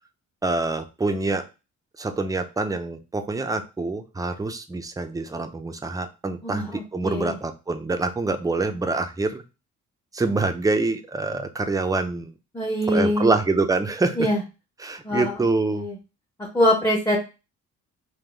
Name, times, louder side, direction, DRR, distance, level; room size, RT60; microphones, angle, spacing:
voice 1, 0.4-1.4 2.0-9.4 10.1-12.3 12.9-14.3 14.8-15.9, right 3 dB, 10° right, 7 dB, 0.5 m, -25 dB
voice 2, 6.4-7.4 12.5-13.3 14.2-14.4 15.0-15.4 15.7-16.0 16.4-17.2, left 1 dB, 10° left, 0 dB, 0.9 m, -23 dB
3.7 x 2.6 x 3.7 m, 0.29 s
cardioid pair, 90°, 30 cm